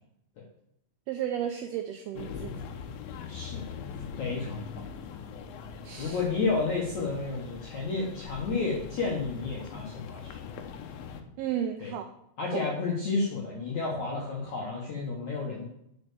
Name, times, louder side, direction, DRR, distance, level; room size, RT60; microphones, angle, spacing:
voice 1, 1.1-2.6 5.8-6.2 11.4-12.1 12.5-12.6, right 10 dB, 85° right, 6 dB, 2.2 m, -33 dB
sound 1, 2.2-11.2, left 6 dB, 80° left, 2.2 m, -41 dB
voice 2, 3.3-3.8 4.2-4.9 6.0-10.4 11.8-11.9 12.4-15.6, left 3 dB, 60° left, -2 dB, 2.0 m, -31 dB
9.2 x 6.2 x 6.9 m, 0.78 s
omnidirectional pair, 5.2 m